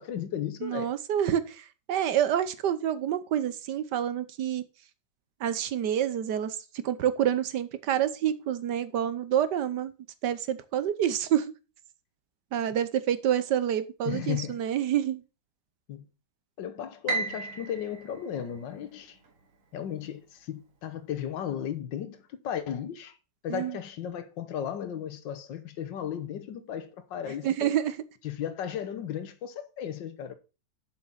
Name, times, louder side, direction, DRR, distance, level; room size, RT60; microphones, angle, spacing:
voice 1, 0.0-0.9 14.0-14.6 15.9-16.0 16.6-19.2 19.7-23.2 23.4-27.7 28.2-30.3, left 9 dB, 75° left, 1.6 m, -35 dB
voice 2, 0.6-4.6 5.4-6.6 6.8-9.9 10.2-11.5 12.5-15.2 23.5-23.8 27.4-28.0, right 10 dB, 70° right, 1.4 m, -28 dB
Piano, 17.1-19.3, right 3 dB, 45° right, 1.8 m, -35 dB
7.6 x 6.1 x 5.6 m
omnidirectional pair, 2.0 m